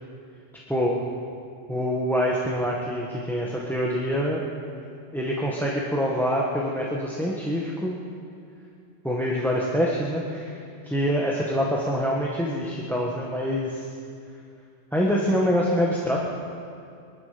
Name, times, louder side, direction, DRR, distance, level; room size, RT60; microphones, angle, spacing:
voice 1, 0.7-1.0 1.7-4.4 5.1-8.0 9.0-13.9 14.9-16.2, equal, ahead, -3 dB, 1.4 m, -25 dB
23.0 x 12.0 x 5.2 m, 2.5 s
omnidirectional pair, 1.3 m